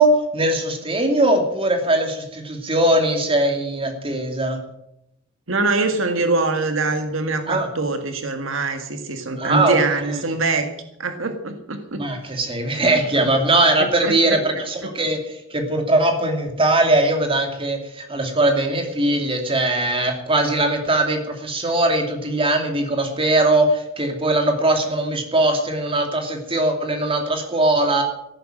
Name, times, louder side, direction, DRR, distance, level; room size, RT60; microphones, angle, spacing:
voice 1, 0.0-4.6 7.5-7.7 9.4-9.8 10.1-10.2 12.0-28.0, right 2 dB, 25° right, 4 dB, 2.7 m, -20 dB
voice 2, 5.5-10.7 11.0-12.0 13.2-13.3 14.0-14.4 14.8-14.9, right 3 dB, 75° right, 6 dB, 1.8 m, -23 dB
14.0 x 11.5 x 7.7 m, 0.82 s
head